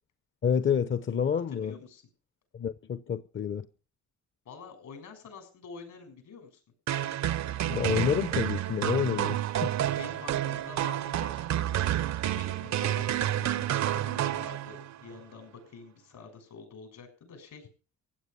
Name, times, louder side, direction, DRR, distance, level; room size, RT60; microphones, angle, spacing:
voice 1, 0.4-1.7 2.5-3.7 7.7-9.7, left 7 dB, 40° left, 0.8 m, -28 dB
voice 2, 1.3-2.0 4.4-6.6 10.0-11.9 12.3-17.7, left 5 dB, 75° left, 6.7 m, -47 dB
sound 1, 6.9-15.0, right 12 dB, 65° right, 0.7 m, -30 dB
16.0 x 9.2 x 6.9 m
cardioid pair, 90°, 30 cm